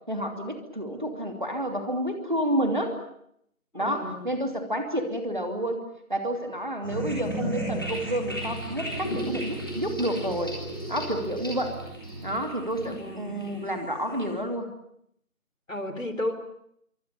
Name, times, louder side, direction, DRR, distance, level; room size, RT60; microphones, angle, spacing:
voice 1, 0.1-2.9 3.7-5.8 6.1-10.6 10.9-11.8 12.2-14.7, equal, 35° right, 4 dB, 2.8 m, -29 dB
voice 2, 3.7-4.3 13.0-13.4 15.7-16.3, left 1 dB, 65° left, 9 dB, 4.0 m, -33 dB
sound 1, 6.8-14.3, right 1 dB, 15° left, 3.6 m, -34 dB
25.5 x 24.5 x 6.8 m, 0.71 s
figure-of-eight pair, 180°, 42 cm